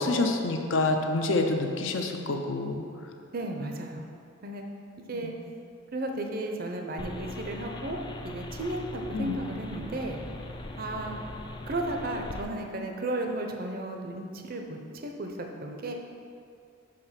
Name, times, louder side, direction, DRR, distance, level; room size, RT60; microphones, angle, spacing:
voice 1, 0.0-2.8 5.1-5.3 9.1-9.3, left 2 dB, 65° left, 4 dB, 0.6 m, -27 dB
voice 2, 3.3-4.0 4.4-4.6 5.1-5.3 5.9-8.0 8.2-10.2 10.8-11.2 11.7-15.9, right 1 dB, 45° right, 3 dB, 0.6 m, -34 dB
sound 1, 7.0-12.4, left 2 dB, 20° left, 0.3 m, -40 dB
5.7 x 5.1 x 5.7 m, 2.4 s
head